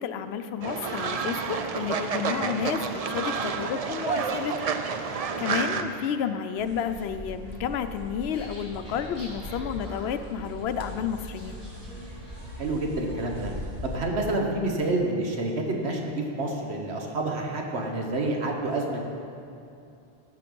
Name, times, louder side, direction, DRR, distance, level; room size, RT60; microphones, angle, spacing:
voice 1, 0.0-11.6, left 8 dB, 80° left, 10 dB, 0.8 m, -31 dB
Fowl, 0.6-5.8, right 5 dB, 50° right, 0.5 m, -29 dB
sound 1, 6.6-14.0, equal, 70° right, 1.3 m, -40 dB
wildwood ferriswheel, 8.2-13.6, equal, 15° right, 3.1 m, -46 dB
voice 2, 12.6-13.5 13.8-19.0, right 2 dB, 85° right, 1 dB, 1.5 m, -28 dB
15.0 x 5.8 x 5.3 m, 2.6 s
omnidirectional pair, 1.1 m